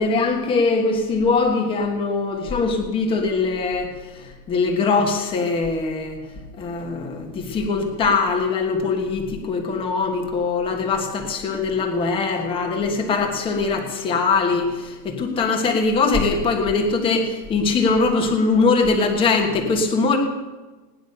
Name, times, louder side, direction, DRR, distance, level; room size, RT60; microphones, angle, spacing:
voice 1, 0.0-3.9 4.2-6.2 6.6-20.2, left 4 dB, 10° left, 2 dB, 1.3 m, -22 dB
17.5 x 10.5 x 6.6 m, 1.2 s
supercardioid pair, 175°, 47 cm